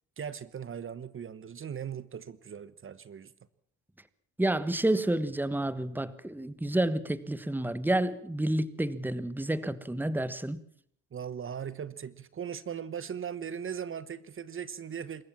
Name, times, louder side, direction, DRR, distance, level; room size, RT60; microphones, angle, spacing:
voice 1, 0.2-3.3 11.1-15.3, right 8 dB, 45° right, 16 dB, 1.1 m, -39 dB
voice 2, 4.4-10.6, right 1 dB, 5° right, 16 dB, 1.3 m, -29 dB
26.5 x 14.5 x 7.3 m, 0.64 s
cardioid pair, 90°, 30 cm